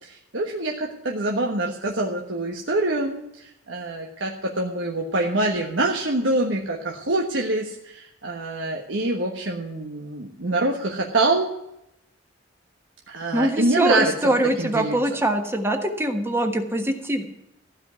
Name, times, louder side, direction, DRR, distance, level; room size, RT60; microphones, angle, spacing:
voice 1, 0.0-11.5 13.1-14.3 14.6-15.0, right 2 dB, 75° right, 0 dB, 1.3 m, -25 dB
voice 2, 13.3-17.2, right 1 dB, 15° right, 5 dB, 1.4 m, -23 dB
15.0 x 5.3 x 9.5 m, 0.84 s
head